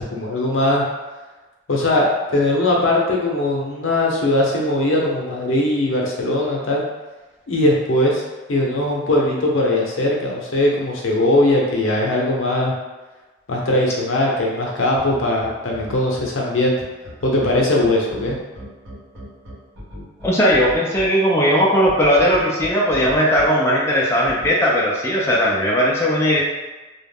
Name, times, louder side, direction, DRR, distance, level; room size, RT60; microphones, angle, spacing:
voice 1, 0.1-0.8 1.7-6.8 7.5-8.2 8.5-12.7 13.5-16.8 17.2-18.4, left 1 dB, 85° left, -2 dB, 0.6 m, -20 dB
sound 1, 15.0-16.3 17.0-21.1 21.8-23.5 24.2-24.5, equal, 80° right, 0.8 m, -36 dB
voice 2, 20.2-26.4, equal, 15° left, -5 dB, 0.3 m, -17 dB
2.3 x 2.1 x 3.3 m, 1.2 s
head